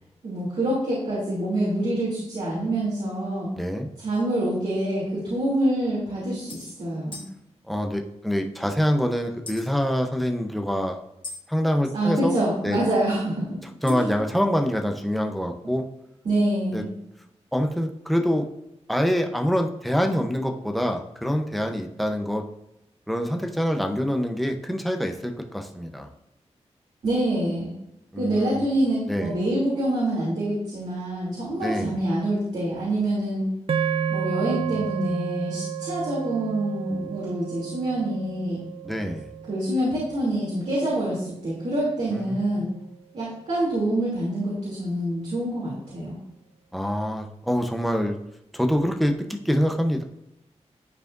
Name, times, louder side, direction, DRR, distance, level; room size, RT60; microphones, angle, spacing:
voice 1, 0.2-3.5 4.0-7.2 11.9-13.6 13.9-14.2 16.2-16.9 27.0-27.7 28.1-33.5 34.1-38.6 39.5-42.7 43.1-46.2, right 1 dB, 75° right, -7 dB, 2.9 m, -26 dB
voice 2, 3.6-3.9 7.7-11.0 11.5-12.4 12.6-12.8 13.8-15.8 16.7-16.8 17.5-18.5 18.9-22.4 23.1-26.1 28.1-28.7 29.1-29.3 31.6-32.0 38.8-39.3 42.1-42.6 46.7-48.1 48.5-50.0, equal, ahead, 3 dB, 0.8 m, -25 dB
sound 1, 4.1-4.2 5.2-5.3 5.6-5.7 6.5-6.8 7.1-7.3 9.5-9.7 11.2-11.4 13.9-14.2, left 3 dB, 45° left, 1.2 m, -39 dB
sound 2, 33.7-42.1, right 7 dB, 50° right, 0.4 m, -32 dB
12.0 x 4.8 x 2.6 m, 0.84 s
wide cardioid pair, 100°, 12 cm